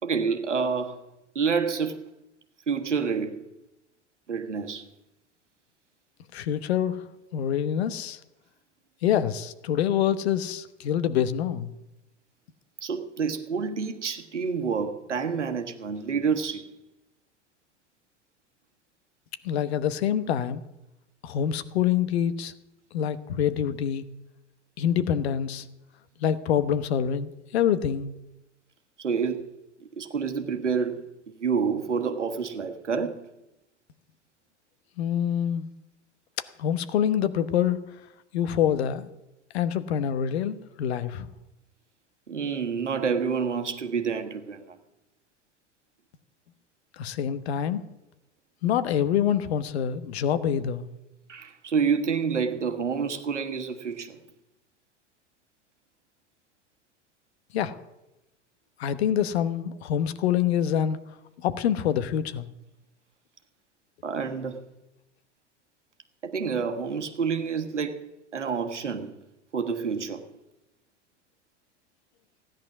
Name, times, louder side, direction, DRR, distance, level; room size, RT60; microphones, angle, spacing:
voice 1, 0.0-1.0 1.3-2.1 2.7-3.4 4.3-4.9 12.8-16.7 29.0-29.5 29.8-33.3 42.3-44.8 51.3-54.2 64.0-64.6 66.2-69.1 69.5-70.2, right 6 dB, 80° right, 1.5 m, -28 dB
voice 2, 6.3-7.0 7.3-8.2 9.0-11.7 19.4-20.6 21.2-22.5 22.9-24.1 24.8-25.6 26.2-28.2 35.0-35.7 36.6-37.8 38.3-39.1 39.5-41.3 47.0-47.8 48.6-50.9 57.5-57.8 58.8-61.0 61.4-62.5, left 9 dB, 60° left, 1.2 m, -26 dB
16.5 x 10.5 x 6.1 m
figure-of-eight pair, 85°, 35 cm